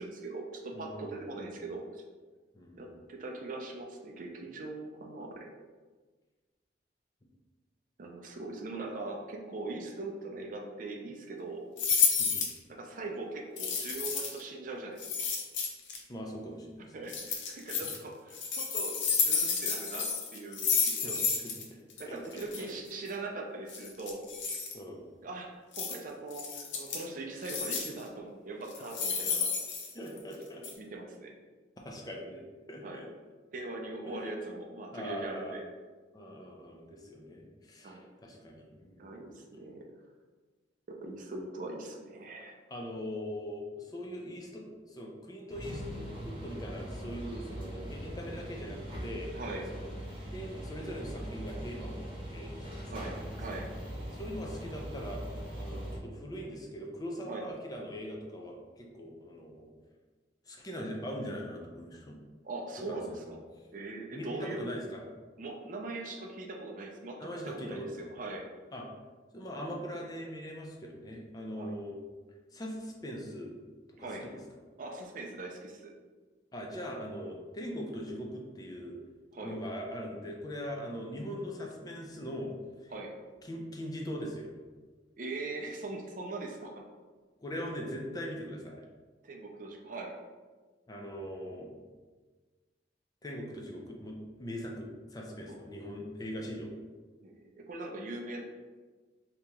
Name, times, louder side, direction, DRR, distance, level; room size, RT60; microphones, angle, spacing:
voice 1, 0.0-2.0 2.8-5.5 8.0-11.7 12.7-15.0 16.9-21.2 22.0-24.2 25.1-29.5 30.8-31.3 32.8-33.1 33.5-35.6 37.8-38.0 39.0-39.9 40.9-42.6 47.2-47.3 49.3-49.7 52.9-53.7 57.2-57.4 62.4-63.4 63.7-64.7 65.4-68.5 71.6-71.7 74.0-74.2 74.8-75.9 79.3-79.6 82.9-83.1 85.2-86.8 89.2-90.1 95.5-95.6 97.2-98.4, right 2 dB, 45° right, 1 dB, 0.4 m, -41 dB
voice 2, 0.7-1.5 2.5-2.9 7.2-7.3 12.2-12.5 16.1-16.9 17.8-17.9 20.9-21.1 21.4-21.5 22.1-22.7 24.7-25.0 29.9-30.7 31.8-33.1 34.1-34.3 34.9-35.5 36.1-39.3 42.7-49.3 49.7-49.9 50.3-53.1 54.1-55.2 55.6-59.7 60.5-62.2 62.9-63.3 64.1-65.0 67.2-68.1 68.7-68.9 69.3-72.0 72.5-73.5 74.0-74.4 76.5-79.0 79.4-82.5 82.8-82.9 83.4-84.5 87.4-88.8 90.9-91.8 93.2-96.7, equal, 20° left, 0 dB, 0.4 m, -41 dB
sound 1, 11.8-12.6 13.6-14.4 15.0-16.0 17.1-18.0 18.3-21.6 21.9-22.0 22.3-22.6 23.7-24.7 25.7-25.9 26.3-27.0 27.4-28.0 28.7-30.3 30.6-30.7, left 6 dB, 85° left, 0.6 m, -31 dB
sound 2, 45.5-56.0, equal, 30° right, 0.9 m, -41 dB
2.9 x 2.8 x 3.5 m, 1.4 s
head